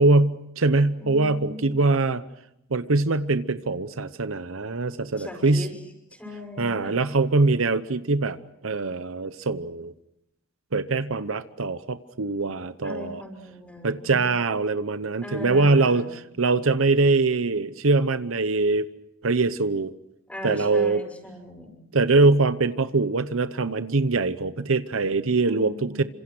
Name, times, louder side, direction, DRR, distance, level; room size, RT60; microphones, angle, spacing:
voice 1, 0.0-2.2 2.7-5.7 6.6-8.4 8.6-9.9 10.7-13.2 13.8-18.9 19.2-19.9 20.4-21.0 21.9-26.0, right 3 dB, 70° right, 13 dB, 0.9 m, -23 dB
voice 2, 1.0-1.7 5.1-5.8 6.1-7.0 12.8-14.3 15.2-16.1 20.3-21.8 25.4-26.1, left 1 dB, 5° left, 4 dB, 6.2 m, -39 dB
28.5 x 26.0 x 6.2 m, 0.80 s
head